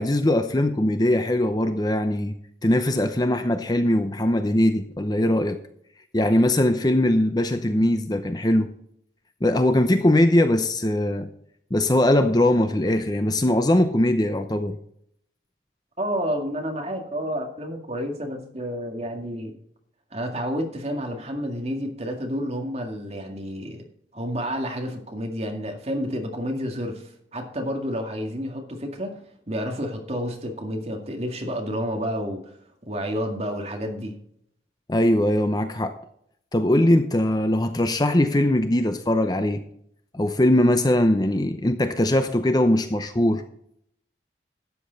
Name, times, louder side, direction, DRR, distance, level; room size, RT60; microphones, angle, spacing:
voice 1, 0.0-2.3 2.6-5.6 6.1-8.7 9.4-11.3 11.7-14.8 34.9-35.9 36.5-39.6 40.1-43.4, left 1 dB, 20° left, 0.7 m, -21 dB
voice 2, 16.0-19.5 20.1-23.8 24.1-29.2 29.5-32.4 32.8-34.2, equal, 35° right, 2.1 m, -30 dB
12.5 x 8.7 x 4.0 m
head